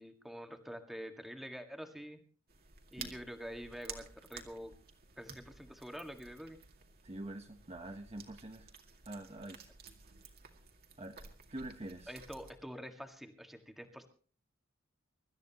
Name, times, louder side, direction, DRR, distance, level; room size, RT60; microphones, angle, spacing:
voice 1, 0.0-2.2 2.9-4.7 5.2-6.6 12.1-14.1, equal, ahead, 5 dB, 1.8 m, -46 dB
sound 1, 2.5-12.5, right 6 dB, 50° right, 2.3 m, -53 dB
voice 2, 7.0-8.7 9.1-9.7 11.0-11.2 11.5-12.1, right 1 dB, 30° right, 5 dB, 1.1 m, -45 dB
25.0 x 13.0 x 3.0 m, 0.41 s
head